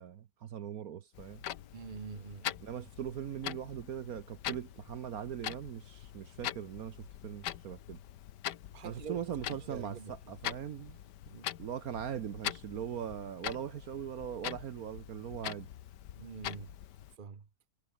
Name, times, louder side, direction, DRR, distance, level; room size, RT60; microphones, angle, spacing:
voice 1, 0.0-1.4 2.6-8.0 8.8-11.0 11.3-15.7, right 9 dB, 60° right, 1.3 m, -40 dB
Clock, 1.1-17.2, left 11 dB, 85° left, 1.5 m, -43 dB
voice 2, 1.7-2.6 8.7-10.1 11.3-11.5 16.2-16.7 17.2-17.5, right 6 dB, 35° right, 1.2 m, -45 dB
omnidirectional pair, 1.8 m